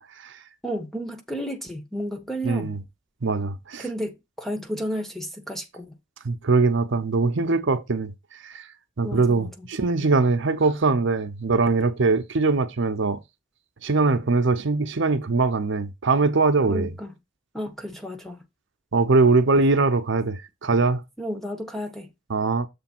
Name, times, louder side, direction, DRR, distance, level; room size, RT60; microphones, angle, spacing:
voice 1, 0.6-2.7 3.8-6.0 9.0-9.7 16.7-17.2 17.5-18.4 21.2-22.1, equal, ahead, 1.1 m, -32 dB
voice 2, 2.4-2.8 3.2-3.8 6.2-8.1 8.4-8.7 9.0-13.2 13.8-16.9 18.9-21.0 22.3-22.7, right 3 dB, 65° right, 0.7 m, -22 dB
7.0 x 3.4 x 5.9 m
head